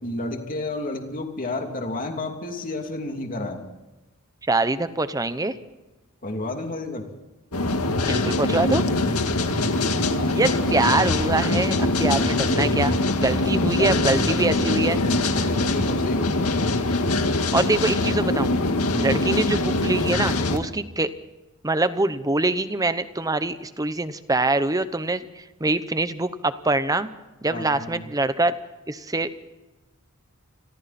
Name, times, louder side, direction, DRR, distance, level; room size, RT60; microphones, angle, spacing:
voice 1, 0.0-3.7 6.2-7.1 9.6-9.9 10.4-10.6 13.7-14.4 14.7-14.8 15.4-16.6 18.8-19.2 27.5-28.0, left 2 dB, 40° left, 3 dB, 2.9 m, -31 dB
voice 2, 4.5-5.5 8.1-8.9 10.3-15.0 17.5-18.5 19.0-21.1 21.6-27.1 27.4-28.5 28.9-29.3, right 2 dB, 15° right, 12 dB, 0.9 m, -24 dB
sound 1, 7.5-20.6, left 2 dB, 80° left, 2.1 m, -23 dB
29.0 x 21.5 x 4.3 m, 1.1 s
head